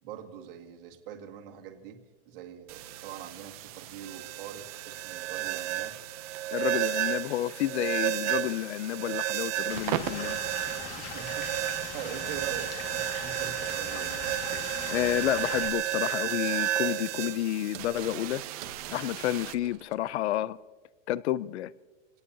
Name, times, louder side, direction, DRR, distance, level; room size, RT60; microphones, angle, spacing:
voice 1, 0.0-6.0 10.6-14.4 17.7-17.8, right 9 dB, 50° right, 2.1 m, -44 dB
sound 1, 2.7-19.5, right 13 dB, 30° right, 0.6 m, -33 dB
voice 2, 6.5-10.4 14.9-18.4 18.9-20.6 21.1-21.7, left 13 dB, 70° left, 0.6 m, -30 dB
Stream / Liquid, 9.7-15.7, left 6 dB, 35° left, 2.0 m, -40 dB
sound 2, 15.4-16.2 16.5-16.8 17.1-20.3, right 8 dB, 70° right, 2.0 m, -50 dB
27.5 x 18.5 x 2.8 m
supercardioid pair, 170°, 35 cm